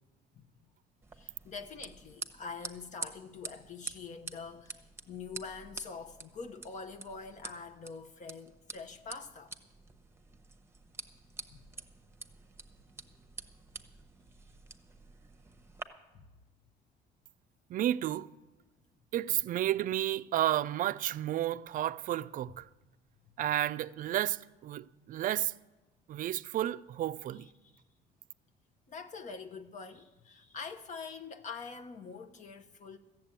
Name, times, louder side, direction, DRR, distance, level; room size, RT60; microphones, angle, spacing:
sound 1, 1.0-15.8, right 4 dB, 15° right, 0.9 m, -48 dB
voice 1, 1.2-9.5 11.5-11.6 16.1-16.2 27.3-27.8 28.9-33.0, left 5 dB, 45° left, 0.7 m, -45 dB
voice 2, 17.7-18.3 19.1-22.6 23.4-25.5 26.1-27.5, right 12 dB, 55° right, 0.4 m, -32 dB
13.5 x 7.4 x 8.9 m
cardioid pair, 110°, 17 cm